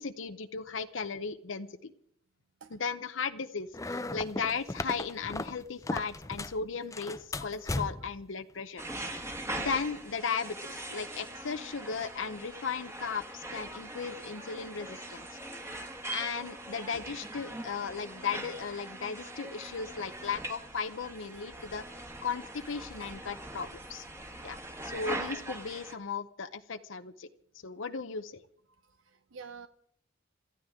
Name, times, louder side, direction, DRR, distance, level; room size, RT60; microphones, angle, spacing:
voice 1, 0.0-1.9 2.7-8.8 9.6-15.4 16.1-21.8 22.2-24.0 24.4-27.3 27.6-28.4, left 5 dB, 80° left, 9 dB, 0.8 m, -36 dB
sound 1, 3.7-6.6 6.9-8.2, left 2 dB, 15° left, 0.6 m, -36 dB
sound 2, 8.8-25.9, right 1 dB, 15° right, 1.4 m, -42 dB
voice 2, 28.7-29.7, right 5 dB, 80° right, 11 dB, 0.6 m, -49 dB
27.5 x 13.5 x 3.7 m, 0.66 s
head